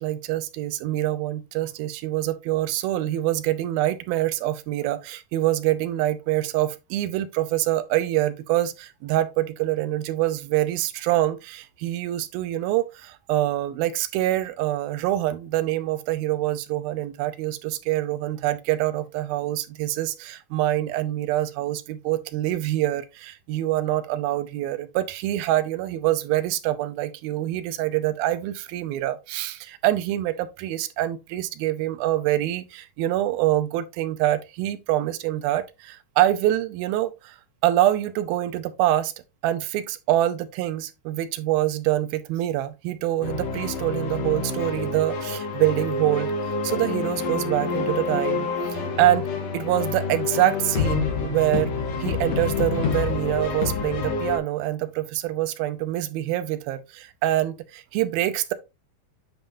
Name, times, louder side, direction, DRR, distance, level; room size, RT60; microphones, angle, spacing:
voice 1, 0.0-37.4 37.6-39.1 39.4-49.3 49.5-51.7 52.0-58.5, right 14 dB, 80° right, 2.6 m, -25 dB
sound 1, 43.2-54.4, left 4 dB, 60° left, 1.9 m, -27 dB
9.0 x 5.4 x 2.7 m
omnidirectional pair, 4.3 m